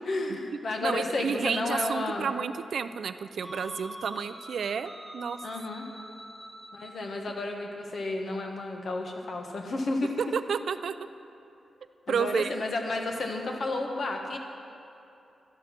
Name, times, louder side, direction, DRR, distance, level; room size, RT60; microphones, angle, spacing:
voice 1, 0.0-2.3 5.4-5.9 6.7-10.1 12.1-14.4, left 2 dB, 55° left, 2 dB, 1.5 m, -32 dB
voice 2, 0.8-5.4 10.2-11.0 12.1-12.5, right 6 dB, 70° right, 12 dB, 0.4 m, -31 dB
sound 1, 3.4-7.1, equal, 5° left, 1.3 m, -45 dB
12.5 x 11.5 x 6.0 m, 2.8 s
wide cardioid pair, 120°, 0 cm